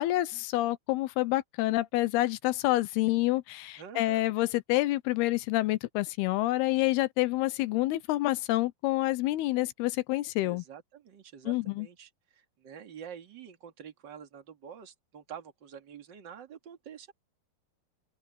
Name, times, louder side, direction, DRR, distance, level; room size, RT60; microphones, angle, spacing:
voice 1, 0.0-10.6 11.5-11.9, left 17 dB, 85° left, 2.7 m, -28 dB
voice 2, 3.8-4.3 10.4-17.1, right 8 dB, 35° right, 2.1 m, -47 dB
omnidirectional pair, 4.5 m